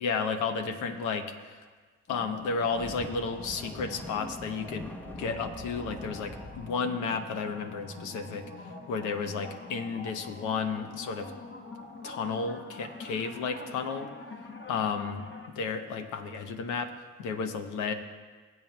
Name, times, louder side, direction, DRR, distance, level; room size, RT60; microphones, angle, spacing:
voice 1, 0.0-1.6 2.1-11.3 12.0-14.1 14.7-16.9 17.2-17.9, left 5 dB, 80° left, 7 dB, 0.9 m, -33 dB
sound 1, 2.1-15.5, left 3 dB, 40° left, 1.3 m, -45 dB
sound 2, 2.5-6.7, equal, 5° left, 0.8 m, -44 dB
21.0 x 7.8 x 2.3 m, 1.4 s
supercardioid pair, 50°, 30 cm